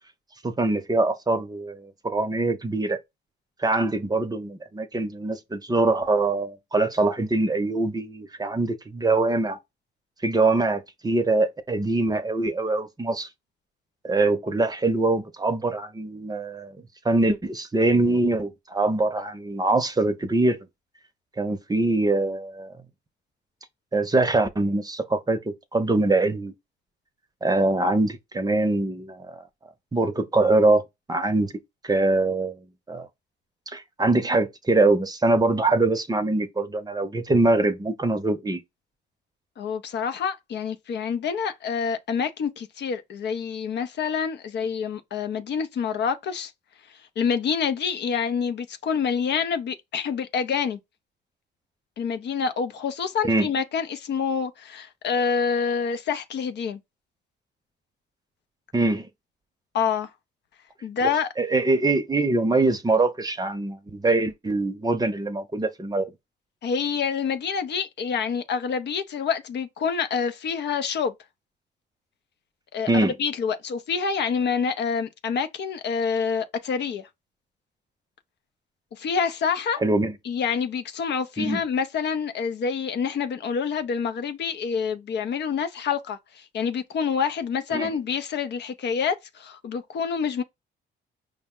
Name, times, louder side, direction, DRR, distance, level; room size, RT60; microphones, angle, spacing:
voice 1, 0.4-3.0 3.6-9.6 10.2-13.3 14.0-16.8 17.0-20.7 21.4-22.7 23.9-25.4 25.7-26.5 27.4-29.4 29.9-30.8 31.1-31.5 31.8-32.6 32.9-33.1 33.7-38.6 53.2-53.5 58.7-59.1 61.4-66.1 72.9-73.1 79.8-80.1 81.4-81.6 87.7-87.9, right 2 dB, 20° right, 0.7 m, -23 dB
voice 2, 39.6-46.5 47.2-50.8 52.0-56.8 59.7-60.1 60.8-61.3 66.6-71.1 72.7-77.1 78.9-79.8 80.2-90.4, left 6 dB, 60° left, 0.6 m, -27 dB
5.1 x 2.1 x 3.7 m
cardioid pair, 90°, 20 cm